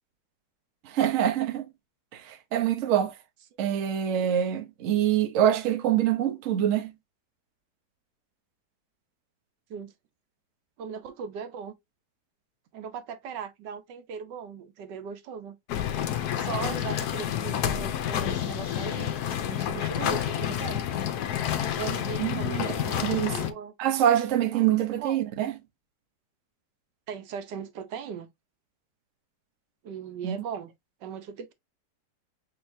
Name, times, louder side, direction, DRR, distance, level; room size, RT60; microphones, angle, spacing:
voice 1, 0.8-1.7 2.1-3.2 3.6-6.9 22.2-22.6 23.0-23.3 23.8-25.5 30.2-30.4, right 10 dB, 60° right, 1.0 m, -25 dB
voice 2, 10.8-11.7 12.7-15.6 16.3-19.2 19.4-20.8 21.8-23.7 24.5-25.2 27.1-28.3 29.8-30.7 31.0-31.5, right 7 dB, 80° right, 1.4 m, -38 dB
sound 1, 15.7-23.5, left 10 dB, 70° left, 1.1 m, -29 dB
5.0 x 3.9 x 2.6 m
omnidirectional pair, 1.9 m